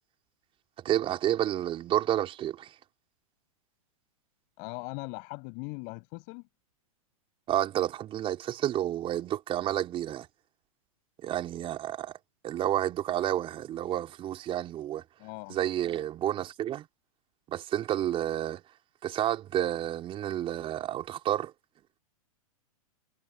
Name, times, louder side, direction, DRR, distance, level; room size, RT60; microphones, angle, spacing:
voice 1, 0.8-2.7 7.5-10.3 11.2-12.1 12.4-15.0 15.5-16.9 17.5-18.6 19.0-21.5, right 12 dB, 30° right, 4.7 m, -30 dB
voice 2, 4.6-6.4 15.2-15.6, left 36 dB, 45° left, 7.3 m, -40 dB
hypercardioid pair, 120°, 18 cm